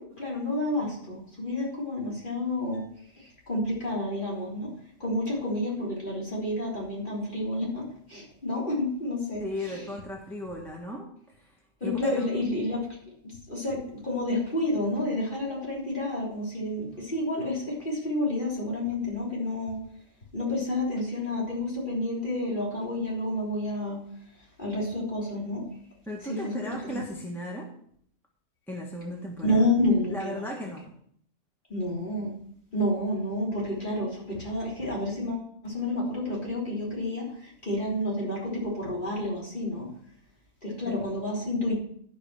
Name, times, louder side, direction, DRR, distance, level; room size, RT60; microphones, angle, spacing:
voice 1, 0.0-2.8 3.5-4.7 5.0-9.8 11.8-12.9 13.5-19.8 20.3-24.0 24.6-25.6 26.3-26.6 26.9-27.0 29.4-30.4 31.7-32.3 32.7-37.3 37.6-39.9 40.6-41.7, left 1 dB, 35° left, -4 dB, 3.6 m, -29 dB
voice 2, 9.4-11.6 11.8-12.3 26.1-27.7 28.7-29.7 30.1-30.9 40.9-41.0, left 1 dB, ahead, -1 dB, 1.4 m, -36 dB
12.0 x 5.4 x 6.2 m, 0.65 s
omnidirectional pair, 1.5 m